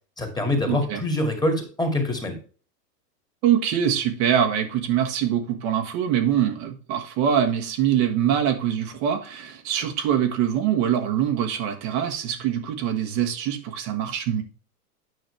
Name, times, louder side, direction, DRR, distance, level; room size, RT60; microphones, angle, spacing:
voice 1, 0.2-2.4, left 1 dB, 10° left, 4 dB, 2.2 m, -25 dB
voice 2, 0.7-1.0 3.4-14.4, right 9 dB, 45° right, 5 dB, 1.4 m, -24 dB
9.6 x 5.7 x 3.3 m, 0.38 s
hypercardioid pair, 115°, 49 cm